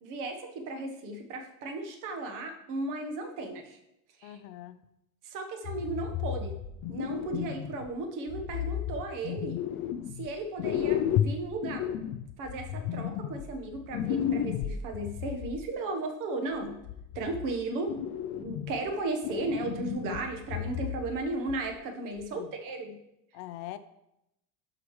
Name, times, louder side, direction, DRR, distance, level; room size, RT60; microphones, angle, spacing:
voice 1, 0.0-3.8 4.2-4.4 5.2-6.5 6.9-9.6 10.2-11.8 12.4-16.7 17.1-18.0 18.3-23.0, right 2 dB, 50° right, 4 dB, 1.3 m, -35 dB
voice 2, 4.2-4.8 22.3-22.5 23.3-23.8, left 14 dB, 75° left, 12 dB, 0.7 m, -42 dB
sound 1, 5.6-7.9 8.3-10.3 10.6-15.6 16.5-17.5 17.9-18.9 19.2-21.2 21.5-21.7 22.2-22.3, left 9 dB, 50° left, 0.4 m, -33 dB
12.0 x 4.9 x 3.2 m, 0.83 s
cardioid pair, 170°, 39 cm